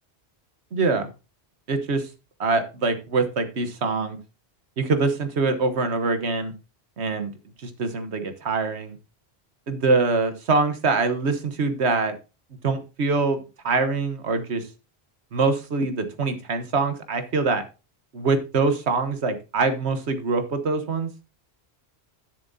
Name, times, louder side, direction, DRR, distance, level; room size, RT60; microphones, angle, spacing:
voice 1, 0.7-1.1 1.7-2.0 2.4-4.2 4.8-6.5 7.0-7.3 7.6-8.9 9.7-12.1 12.6-14.6 15.3-17.6 18.1-21.1, right 3 dB, 90° right, 9 dB, 1.4 m, -24 dB
11.0 x 7.3 x 2.8 m, 0.30 s
omnidirectional pair, 1.1 m